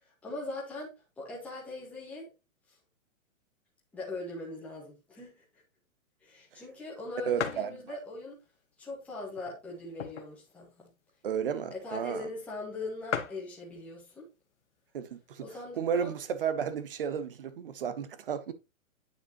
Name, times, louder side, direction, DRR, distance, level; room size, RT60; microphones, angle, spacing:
voice 1, 0.0-2.3 3.9-5.4 6.2-8.4 8.8-10.9 11.7-14.3 15.4-16.2, left 2 dB, 5° left, 1.5 m, -41 dB
sound 1, 6.4-6.5 6.9-7.0 7.4-7.7 8.4-8.5 9.3-10.4 10.8-10.9 11.1-11.3 12.1-12.2 12.4-12.5 12.8-12.9 13.1-13.5 14.4-14.7 15.3-15.4 15.5-16.3, left 8 dB, 60° left, 1.1 m, -37 dB
voice 2, 7.3-8.0 11.2-12.3 14.9-15.5 15.8-18.5, right 7 dB, 40° right, 0.8 m, -33 dB
9.1 x 5.0 x 2.9 m
hypercardioid pair, 175°, 41 cm